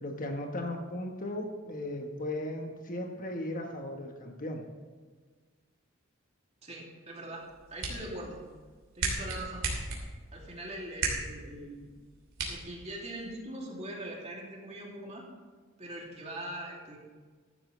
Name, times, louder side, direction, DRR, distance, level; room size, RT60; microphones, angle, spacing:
voice 1, 0.0-4.6, left 1 dB, 40° left, 3 dB, 1.3 m, -36 dB
voice 2, 6.6-8.4 8.9-9.6 10.3-11.9 12.5-15.3 15.8-17.0, right 1 dB, 30° right, -2 dB, 2.6 m, -42 dB
sound 1, 7.4-13.4, right 3 dB, 65° right, 3.0 m, -38 dB
14.5 x 11.5 x 3.2 m, 1.5 s
head